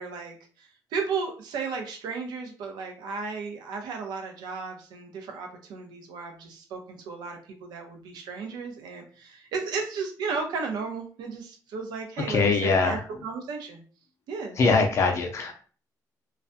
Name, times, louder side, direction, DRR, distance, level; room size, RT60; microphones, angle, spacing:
voice 1, 0.0-13.8 14.3-14.6, right 5 dB, 85° right, 3 dB, 0.6 m, -34 dB
voice 2, 12.3-13.0 14.6-15.5, left 4 dB, 45° left, 3 dB, 0.4 m, -22 dB
2.3 x 2.1 x 2.6 m, 0.41 s
cardioid pair, 150°, 7 cm